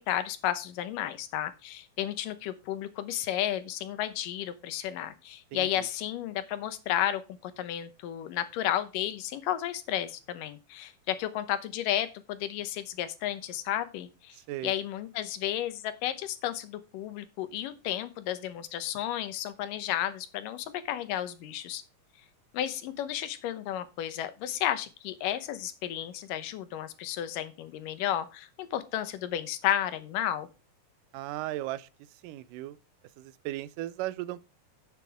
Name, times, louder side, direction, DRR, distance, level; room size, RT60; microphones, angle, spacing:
voice 1, 0.1-14.4 14.6-21.8 22.5-30.5, left 11 dB, 90° left, 2.6 m, -32 dB
voice 2, 5.5-5.9 14.5-14.7 31.1-31.9 32.2-32.8 33.2-34.4, right 15 dB, 85° right, 2.2 m, -36 dB
10.0 x 8.2 x 3.5 m
omnidirectional pair, 3.7 m